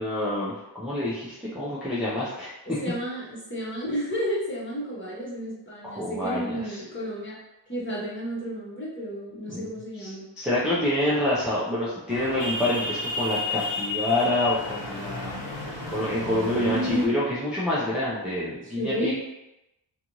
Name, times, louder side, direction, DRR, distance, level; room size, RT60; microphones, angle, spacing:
voice 1, 0.0-2.5 5.8-6.8 9.5-9.7 10.0-15.4 15.9-19.1, left 1 dB, ahead, -9 dB, 0.6 m, -27 dB
voice 2, 2.7-7.4 7.7-10.3 16.6-17.3 18.6-19.1, equal, 25° left, -7 dB, 1.1 m, -31 dB
sound 1, 12.1-17.1, left 2 dB, 80° left, 0.9 m, -32 dB
2.5 x 2.5 x 3.0 m, 0.91 s
wide cardioid pair, 75°, 44 cm